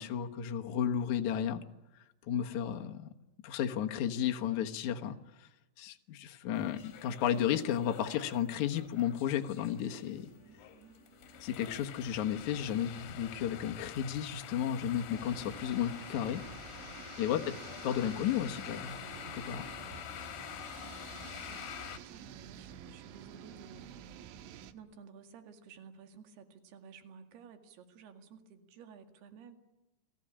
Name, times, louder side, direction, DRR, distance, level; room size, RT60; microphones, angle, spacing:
voice 1, 0.0-1.6 2.3-3.1 3.4-5.5 5.8-10.3 11.4-16.4 17.2-17.6 17.8-19.0 19.3-19.7, left 9 dB, 80° left, 4 dB, 1.6 m, -33 dB
sound 1, 6.5-22.0, left 10 dB, 65° left, 2.8 m, -47 dB
sound 2, 6.8-20.2, right 5 dB, 25° right, 8.3 m, -62 dB
voice 2, 10.2-11.0 17.4-17.5 20.8-23.9 24.7-29.6, right 6 dB, 60° right, 7 dB, 3.8 m, -55 dB
sound 3, 15.2-24.7, right 9 dB, 80° right, 3.6 m, -50 dB
30.0 x 20.0 x 8.8 m, 1.0 s
omnidirectional pair, 5.5 m